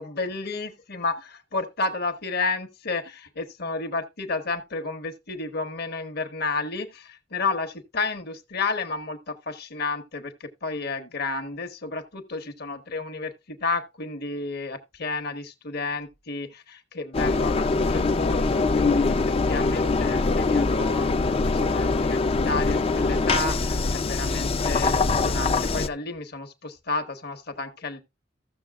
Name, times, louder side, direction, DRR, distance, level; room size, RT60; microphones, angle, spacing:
voice 1, 0.0-19.1 19.4-28.0, left 3 dB, 60° left, 1.2 m, -31 dB
Engine, 17.1-25.9, left 3 dB, 30° left, 0.4 m, -23 dB
15.0 x 6.7 x 2.4 m
head